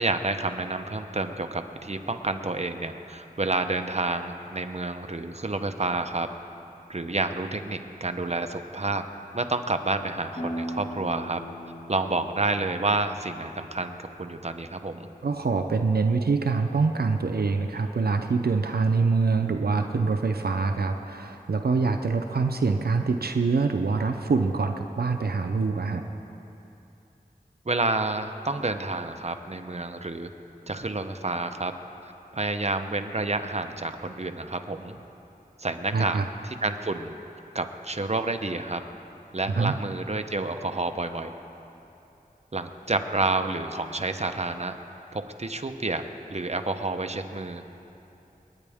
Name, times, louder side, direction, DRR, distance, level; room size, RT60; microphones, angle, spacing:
voice 1, 0.0-6.3 6.9-9.0 9.3-11.4 11.9-15.1 27.7-30.3 30.7-31.7 32.0-35.0 35.6-37.1 37.5-38.8 39.3-41.3 42.5-44.7 45.1-46.0 46.3-47.6, right 2 dB, 45° right, 7 dB, 0.8 m, -29 dB
sound 1, 10.3-15.7, equal, 45° left, 2.1 m, -40 dB
voice 2, 15.2-26.1 35.9-36.3 39.5-39.7, right 4 dB, 80° right, 5 dB, 0.6 m, -25 dB
29.5 x 9.8 x 3.6 m, 2.9 s
wide cardioid pair, 65°, 16 cm